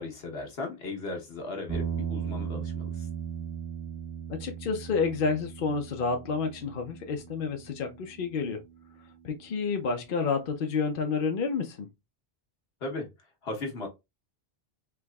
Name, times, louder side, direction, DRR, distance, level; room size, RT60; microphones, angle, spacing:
voice 1, 0.0-2.9 12.8-13.1 13.4-13.9, left 3 dB, 75° left, 1.3 m, -36 dB
sound 1, 1.7-10.0, right 8 dB, 20° right, 0.7 m, -38 dB
voice 2, 4.3-8.6 9.2-11.9, left 5 dB, 60° left, 0.8 m, -29 dB
4.6 x 2.9 x 2.2 m
omnidirectional pair, 1.0 m